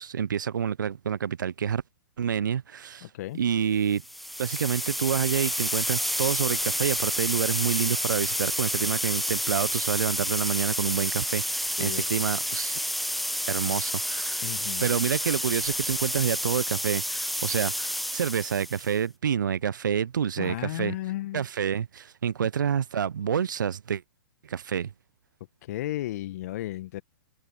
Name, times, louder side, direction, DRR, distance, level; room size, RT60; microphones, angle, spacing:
voice 1, 0.0-1.8 2.2-3.1 3.4-4.0 4.4-12.8 13.5-14.4 14.8-21.0 21.3-24.0 24.5-24.9, right 8 dB, 70° right, 0.6 m, -28 dB
voice 2, 3.0-3.4 11.8-12.2 14.4-14.8 20.4-21.4 25.6-27.0, left 15 dB, 50° left, 1.3 m, -34 dB
sound 1, 4.0-18.9, equal, ahead, 0.7 m, -30 dB
figure-of-eight pair, 115°, 11 cm